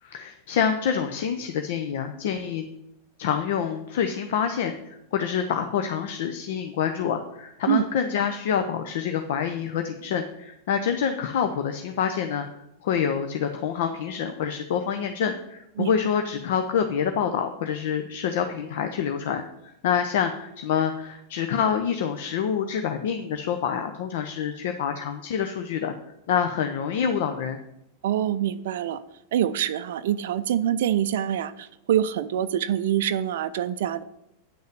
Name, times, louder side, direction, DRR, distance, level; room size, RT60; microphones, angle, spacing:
voice 1, 0.0-2.6 3.2-12.5 12.8-25.9 26.3-27.6, left 7 dB, 55° left, 7 dB, 0.7 m, -27 dB
voice 2, 28.0-29.0 29.3-34.0, right 10 dB, 55° right, 12 dB, 0.4 m, -25 dB
9.4 x 6.4 x 6.8 m, 0.84 s
figure-of-eight pair, 90°, 0 cm